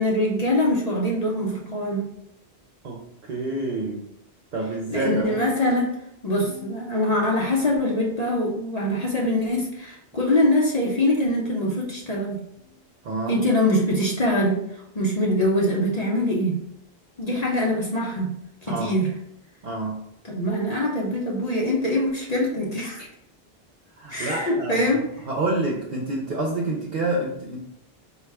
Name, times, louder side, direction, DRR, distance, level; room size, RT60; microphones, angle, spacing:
voice 1, 0.0-2.1 4.9-5.9 6.2-12.4 13.3-16.6 17.2-18.3 18.6-19.1 20.3-23.0 24.1-25.0, left 1 dB, 45° left, -3 dB, 0.7 m, -23 dB
voice 2, 2.8-4.1 4.5-5.4 13.0-13.4 18.7-19.0 19.6-20.1 23.0-23.1 24.0-24.9 25.3-27.6, right 2 dB, 55° right, -1 dB, 0.7 m, -28 dB
sound 1, 5.2-6.1 6.5-7.3 7.7-8.3 8.9-9.5 10.1-10.5 11.3-11.6 12.6-12.8 13.8-14.0 15.0-15.2 16.2-16.4 17.4-17.6 18.7-18.8 19.9-20.0, left 3 dB, 25° right, 0.6 m, -45 dB
4.5 x 2.4 x 3.3 m, 0.78 s
omnidirectional pair, 1.1 m